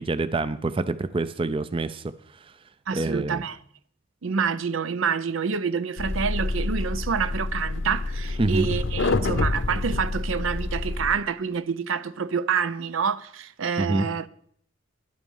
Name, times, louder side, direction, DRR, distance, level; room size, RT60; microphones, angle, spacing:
voice 1, 0.0-2.1 2.9-3.4 8.4-8.7 13.8-14.1, right 2 dB, 25° right, 0.4 m, -26 dB
voice 2, 2.9-3.6 4.2-14.3, right 6 dB, 75° right, 0.6 m, -27 dB
sound 1, 6.0-11.2, left 2 dB, 65° left, 0.8 m, -27 dB
11.5 x 10.0 x 5.5 m
head